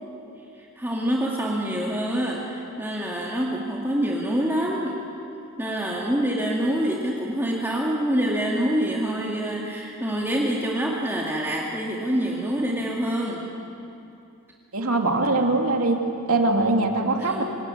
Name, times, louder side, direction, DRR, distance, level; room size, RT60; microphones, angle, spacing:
voice 1, 0.6-5.0 5.6-13.4 17.2-17.4, right 1 dB, 10° right, -3 dB, 2.2 m, -26 dB
voice 2, 14.7-16.0 16.3-17.4, right 2 dB, 75° right, 2 dB, 2.9 m, -22 dB
27.0 x 18.0 x 9.8 m, 2.7 s
head